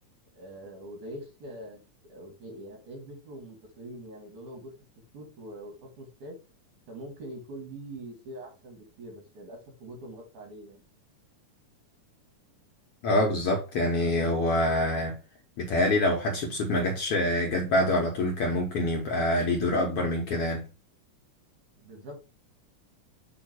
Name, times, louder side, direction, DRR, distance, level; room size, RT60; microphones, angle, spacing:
voice 1, 0.3-4.7 5.1-6.4 6.9-10.8 21.8-22.3, right 1 dB, 70° right, 3.6 m, -43 dB
voice 2, 13.0-15.2 15.6-20.7, left 1 dB, 65° left, 1.6 m, -26 dB
7.1 x 3.1 x 4.5 m
omnidirectional pair, 3.6 m